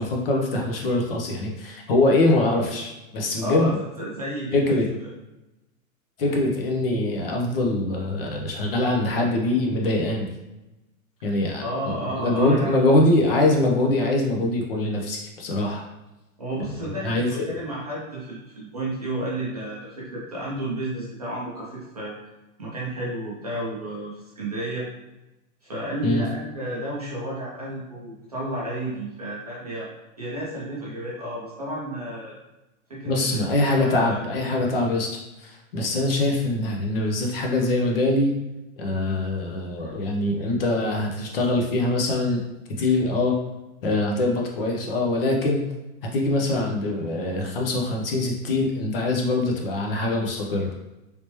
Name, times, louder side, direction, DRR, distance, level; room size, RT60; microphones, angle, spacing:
voice 1, 0.0-3.8 4.5-4.9 6.2-10.3 11.2-15.8 16.6-17.4 26.0-26.2 33.1-35.1 35.4-38.3 38.8-42.4 42.8-43.4 43.8-45.6 46.1-50.7, left 2 dB, 45° left, 0 dB, 0.6 m, -23 dB
voice 2, 3.4-5.1 11.2-12.9 16.4-22.2 22.6-24.9 25.6-29.9 30.2-32.4 32.9-33.4 33.7-34.2, right 1 dB, 30° right, -6 dB, 0.4 m, -32 dB
3.3 x 2.8 x 3.0 m, 1.0 s
supercardioid pair, 175°, 42 cm